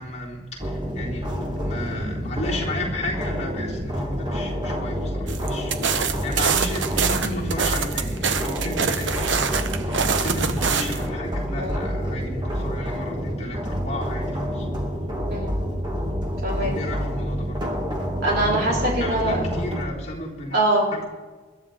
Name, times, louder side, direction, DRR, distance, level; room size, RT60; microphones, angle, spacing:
voice 1, 0.0-14.7 16.6-18.7 19.0-20.6 20.9-21.0, left 1 dB, 35° left, -5 dB, 3.7 m, -33 dB
sound 1, 0.6-19.8, equal, 20° right, 1.7 m, -28 dB
sound 2, 5.3-11.1, right 6 dB, 70° right, 0.9 m, -25 dB
voice 2, 18.2-19.4 20.5-20.9, right 1 dB, 50° right, -4 dB, 4.6 m, -22 dB
21.5 x 13.0 x 3.8 m, 1.3 s
head